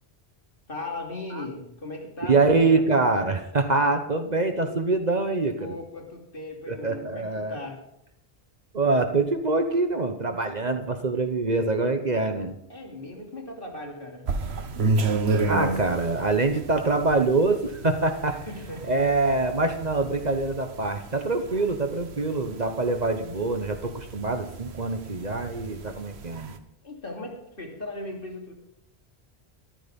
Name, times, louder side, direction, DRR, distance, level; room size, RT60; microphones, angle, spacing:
voice 1, 0.7-2.8 5.6-7.9 12.7-14.3 18.3-19.4 26.8-28.5, left 2 dB, 55° left, 0 dB, 3.1 m, -38 dB
voice 2, 2.2-5.7 6.7-7.6 8.7-12.5 15.5-18.4 18.9-26.5, right 3 dB, 40° right, 7 dB, 1.1 m, -24 dB
sound 1, 14.3-26.6, right 3 dB, 70° right, 1.3 m, -32 dB
14.0 x 12.0 x 5.3 m, 0.80 s
omnidirectional pair, 1.1 m